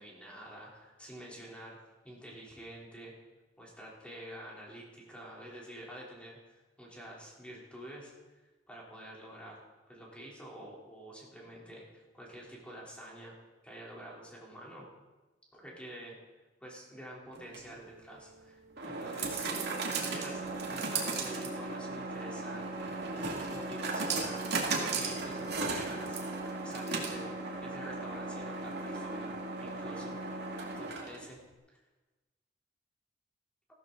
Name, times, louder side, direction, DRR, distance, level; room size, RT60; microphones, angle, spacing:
voice 1, 0.0-1.8 2.0-3.1 3.6-8.4 8.7-13.3 13.6-14.9 15.5-16.2 16.6-27.3 27.6-29.3 29.6-30.2 30.8-31.4 31.7-31.8, equal, 5° left, -4 dB, 3.5 m, -48 dB
sound 1, 17.4-31.3, right 3 dB, 65° right, 2.2 m, -36 dB
15.0 x 13.0 x 3.9 m, 1.2 s
head